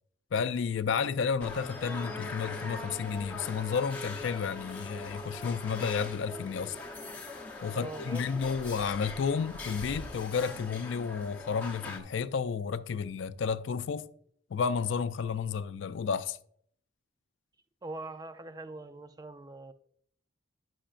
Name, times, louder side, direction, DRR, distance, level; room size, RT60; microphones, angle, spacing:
voice 1, 0.3-6.8 7.6-14.1 14.5-16.4, left 6 dB, 70° left, 0.4 m, -31 dB
sound 1, 1.4-12.0, left 2 dB, 10° left, 0.8 m, -41 dB
voice 2, 7.7-8.3 15.4-15.6 17.8-19.7, right 2 dB, 20° right, 0.4 m, -42 dB
10.0 x 6.3 x 2.5 m
head